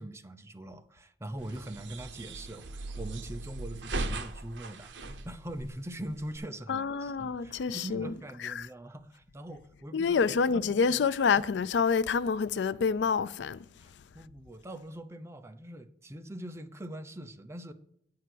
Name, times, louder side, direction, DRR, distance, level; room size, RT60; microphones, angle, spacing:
voice 1, 0.0-4.9 5.2-10.2 10.9-11.0 13.8-17.7, right 1 dB, 15° right, 0.6 m, -42 dB
closing window climalit, 1.4-6.4, right 2 dB, 80° right, 0.8 m, -39 dB
voice 2, 6.7-8.1 8.4-8.7 9.9-13.6, left 5 dB, 70° left, 0.4 m, -27 dB
9.1 x 4.7 x 7.6 m
head